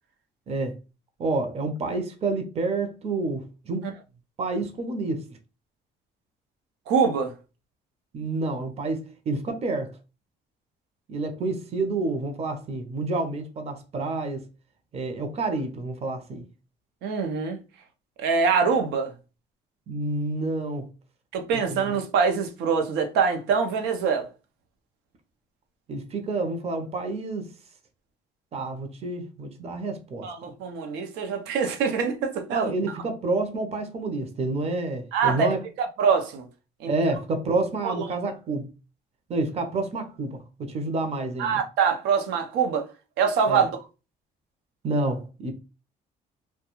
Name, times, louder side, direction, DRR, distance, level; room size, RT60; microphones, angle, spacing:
voice 1, 0.5-0.8 1.2-3.9 4.4-5.2 8.1-10.0 11.1-14.5 14.9-16.5 19.9-20.9 21.7-21.9 25.9-27.5 28.5-30.3 32.5-35.6 36.9-38.7 39.3-41.6 43.5-43.7 44.8-45.6, right 3 dB, 40° right, 0.6 m, -29 dB
voice 2, 6.9-7.3 17.0-17.6 18.2-19.1 21.3-24.3 30.2-32.7 35.1-36.4 36.8-36.9 37.8-38.0 41.4-42.9 43.2-43.7, right 6 dB, 85° right, 0.6 m, -24 dB
2.3 x 2.2 x 2.9 m
cardioid pair, 110°, 17 cm